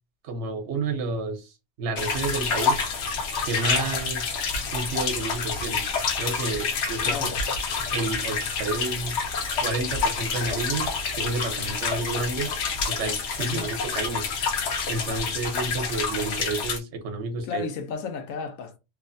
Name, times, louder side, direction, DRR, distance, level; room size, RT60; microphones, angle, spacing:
voice 1, 0.2-2.8 3.4-4.4 4.7-5.8 6.2-7.3 7.9-9.2 9.6-10.9 11.1-12.5 12.9-14.2 14.9-17.6, right 3 dB, 65° right, 1.0 m, -30 dB
sound 1, 2.0-16.8, left 5 dB, 65° left, 0.9 m, -28 dB
voice 2, 7.0-7.4 13.4-13.7 17.4-18.8, left 6 dB, 90° left, 1.0 m, -33 dB
3.1 x 2.0 x 2.5 m
omnidirectional pair, 1.3 m